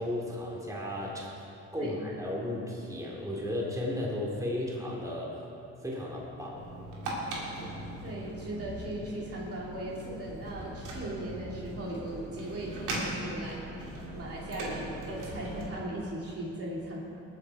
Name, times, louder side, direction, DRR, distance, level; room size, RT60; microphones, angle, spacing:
voice 1, 0.0-1.3 1.7-5.3 5.8-6.6, left 1 dB, 10° right, -3 dB, 2.8 m, -34 dB
sound 1, 6.5-15.7, right 1 dB, 90° right, 2.7 m, -39 dB
voice 2, 7.6-13.7 14.1-17.0, right 1 dB, 50° right, -4 dB, 2.6 m, -38 dB
19.5 x 7.0 x 4.8 m, 2.8 s
cardioid pair, 90°, 30 cm